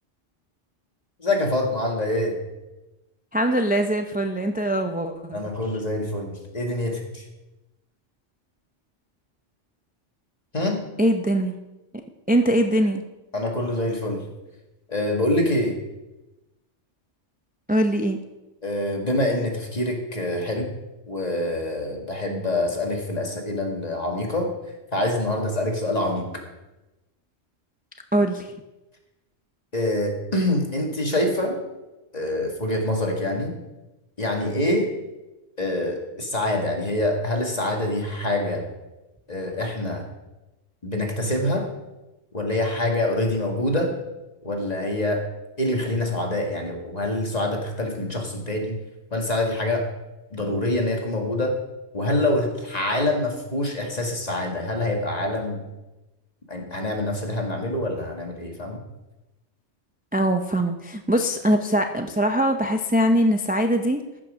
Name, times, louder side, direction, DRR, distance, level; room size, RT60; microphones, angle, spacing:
voice 1, 1.2-2.4 5.3-7.2 10.5-10.8 13.3-14.2 14.9-15.7 18.6-20.7 21.1-24.5 24.9-26.4 29.7-31.6 32.1-33.5 34.2-34.9 35.6-38.7 39.3-40.0 40.8-41.7 42.3-44.0 44.4-45.2 45.6-48.8 49.1-49.9 50.3-51.6 51.9-55.7 56.5-58.8, left 1 dB, 35° left, 1 dB, 1.9 m, -25 dB
voice 2, 3.3-5.4 11.0-11.6 12.3-13.0 17.7-18.2 28.1-28.5 60.1-64.0, equal, 10° right, 5 dB, 0.4 m, -22 dB
15.0 x 6.1 x 6.2 m, 1.0 s
omnidirectional pair, 1.3 m